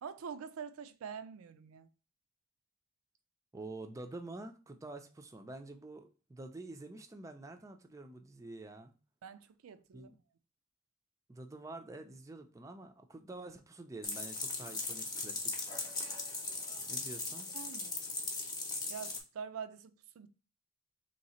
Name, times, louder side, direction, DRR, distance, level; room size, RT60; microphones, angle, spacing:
voice 1, 0.0-1.9 9.2-10.1 17.5-18.0 18.9-20.3, right 6 dB, 85° right, 0.4 m, -45 dB
voice 2, 3.5-8.9 9.9-10.2 11.3-15.6 16.9-17.5, right 2 dB, 15° right, 0.4 m, -48 dB
sound 1, 14.0-19.2, left 3 dB, 20° left, 0.7 m, -39 dB
3.2 x 2.8 x 4.2 m
head